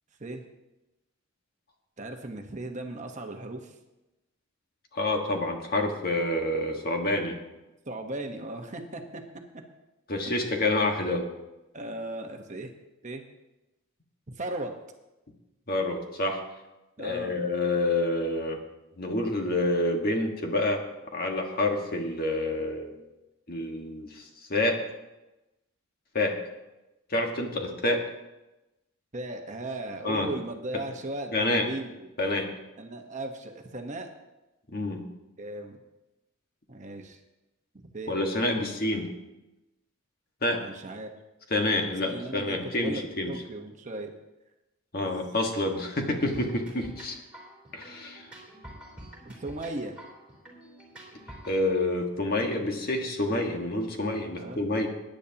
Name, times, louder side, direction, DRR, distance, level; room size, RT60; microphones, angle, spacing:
voice 1, 2.0-3.7 7.9-9.2 10.2-10.5 11.7-12.7 13.0-13.2 14.4-14.7 17.0-17.4 29.1-32.1 32.8-34.1 35.4-35.8 36.7-37.2 37.9-38.2 40.5-41.1 41.8-44.1 49.2-50.0 54.4-54.6, right 2 dB, 35° right, 3 dB, 1.1 m, -37 dB
voice 2, 4.9-7.4 10.1-11.3 15.7-16.4 17.0-18.6 19.0-20.8 21.1-23.0 23.5-24.2 24.5-24.8 26.1-26.4 27.1-28.0 30.0-30.3 30.7-30.8 31.3-31.7 32.2-32.5 34.7-35.1 38.1-39.1 40.4-40.6 41.5-43.3 44.9-47.2 47.7-48.3 51.4-54.9, left 2 dB, 45° left, 2 dB, 1.6 m, -28 dB
sound 1, 46.3-51.6, right 1 dB, 5° right, 3.4 m, -47 dB
21.0 x 10.0 x 2.9 m, 0.99 s
head